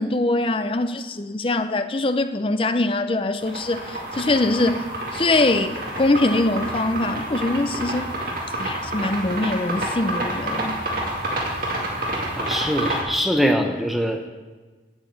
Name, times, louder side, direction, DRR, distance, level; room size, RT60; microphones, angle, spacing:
voice 1, 0.0-4.8 5.1-8.1 8.6-10.8, left 2 dB, 30° left, 0.6 m, -23 dB
sound 1, 3.4-13.0, right 1 dB, 50° right, 2.4 m, -29 dB
voice 2, 12.4-14.3, equal, ahead, 0.8 m, -22 dB
8.8 x 8.2 x 8.0 m
head